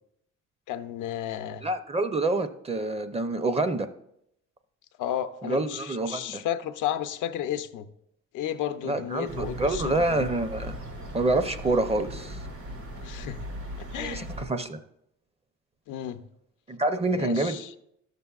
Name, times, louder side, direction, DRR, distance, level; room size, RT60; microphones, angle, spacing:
voice 1, 0.7-1.7 5.0-7.9 8.3-10.3 13.0-13.4 13.8-14.3 15.9-16.2 17.1-17.7, left 11 dB, 85° left, 9 dB, 0.6 m, -33 dB
voice 2, 1.6-3.9 5.4-6.4 8.8-10.8 11.1-12.4 14.0-14.8 16.7-17.6, right 2 dB, 20° right, 10 dB, 0.5 m, -27 dB
sound 1, 9.2-14.4, equal, 75° right, 2.9 m, -38 dB
12.0 x 6.7 x 2.3 m, 0.76 s
cardioid pair, 90°, 30 cm